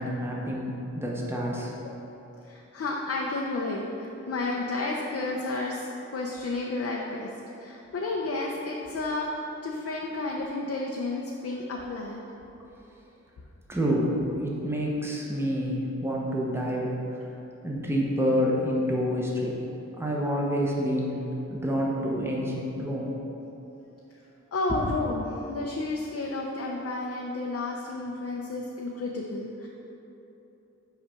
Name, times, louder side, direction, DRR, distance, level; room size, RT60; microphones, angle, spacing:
voice 1, 0.0-1.7 13.7-17.2 17.6-19.6 20.0-23.1 24.7-24.8, equal, 10° right, -3 dB, 0.9 m, -28 dB
voice 2, 1.8-2.2 2.5-7.3 7.6-12.2 24.5-29.7, left 2 dB, 55° left, -1 dB, 0.6 m, -31 dB
5.8 x 4.9 x 5.7 m, 2.9 s
wide cardioid pair, 120°, 30 cm